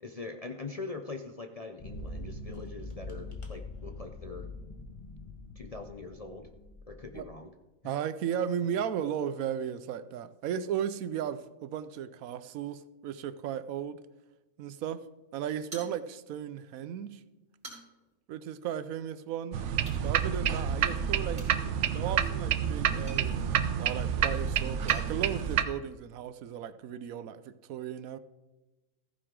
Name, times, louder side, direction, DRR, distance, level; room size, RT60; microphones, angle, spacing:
voice 1, 0.0-4.5 5.6-6.5 6.9-7.5 7.8-8.0, left 3 dB, 45° left, 0.5 m, -42 dB
sound 1, 1.8-7.4, left 2 dB, 25° left, 1.3 m, -43 dB
voice 2, 7.8-14.0 14.6-15.0 15.3-17.2 18.3-19.6 20.0-21.4 21.9-28.2, right 9 dB, 90° right, 1.1 m, -35 dB
sound 2, 15.7-16.5 16.8-16.9 17.4-18.1 19.8-20.1 21.3-25.1, right 1 dB, 35° right, 4.4 m, -50 dB
sound 3, 19.5-25.6, right 8 dB, 65° right, 0.9 m, -29 dB
15.0 x 9.5 x 3.7 m
omnidirectional pair, 1.4 m